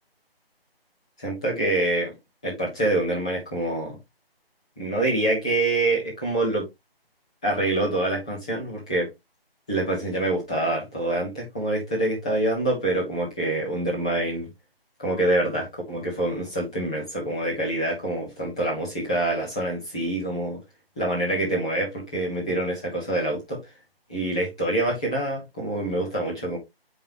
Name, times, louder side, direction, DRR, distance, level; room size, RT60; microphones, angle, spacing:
voice 1, 1.2-2.1 2.4-4.0 4.8-6.6 7.4-9.1 9.7-14.5 15.0-20.6 21.0-23.6 24.1-26.6, right 1 dB, 5° left, 1.1 m, -26 dB
8.1 x 5.4 x 3.0 m
figure-of-eight pair, 175°, 30 cm